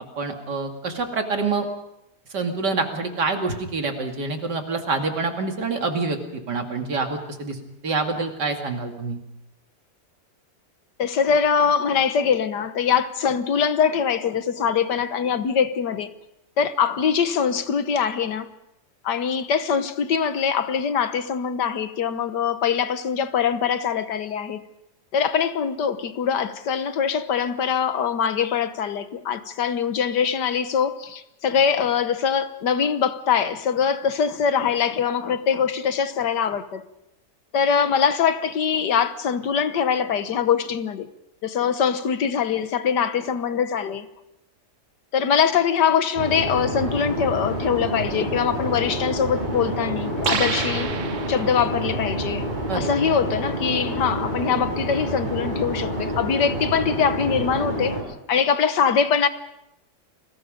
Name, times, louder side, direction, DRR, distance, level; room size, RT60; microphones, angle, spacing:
voice 1, 0.2-1.7 2.3-7.6 7.8-9.2 52.7-52.9, right 3 dB, 80° right, 3.0 m, -26 dB
voice 2, 11.0-16.1 16.6-18.5 19.0-24.6 25.1-36.8 37.5-41.1 41.4-44.1 45.1-50.9 51.3-52.5 52.7-58.0 58.3-59.3, left 7 dB, 80° left, 1.8 m, -23 dB
sound 1, 46.2-58.0, right 1 dB, 25° right, 5.4 m, -28 dB
sound 2, 50.2-51.8, right 7 dB, 50° right, 1.3 m, -28 dB
29.5 x 21.0 x 5.2 m
omnidirectional pair, 1.8 m